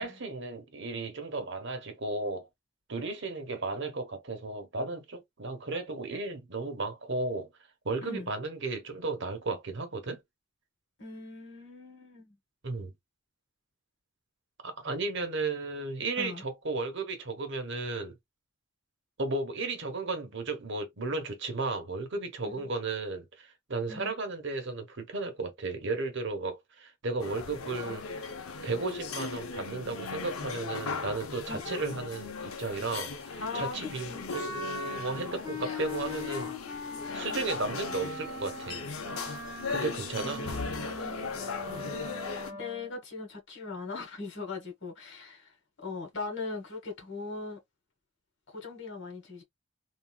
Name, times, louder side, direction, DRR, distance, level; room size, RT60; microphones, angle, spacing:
voice 1, 0.0-2.5 2.9-7.5 7.8-10.2 12.6-12.9 14.6-18.2 19.2-28.3 28.6-36.5 37.1-38.8 39.3-39.4 39.7-40.4, right 3 dB, 60° right, 1.1 m, -34 dB
voice 2, 8.0-8.3 11.0-12.4 16.2-16.4 22.4-22.7 23.9-24.2 31.5-31.8 33.4-33.8 34.1-34.3 39.6-40.6 42.5-47.6 48.5-49.4, left 4 dB, 60° left, 1.5 m, -40 dB
sound 1, 27.2-42.5, left 4 dB, 80° left, 0.7 m, -38 dB
Wind instrument woodwind instrument, 34.3-42.9, left 2 dB, 15° right, 1.4 m, -41 dB
3.5 x 2.6 x 2.2 m
head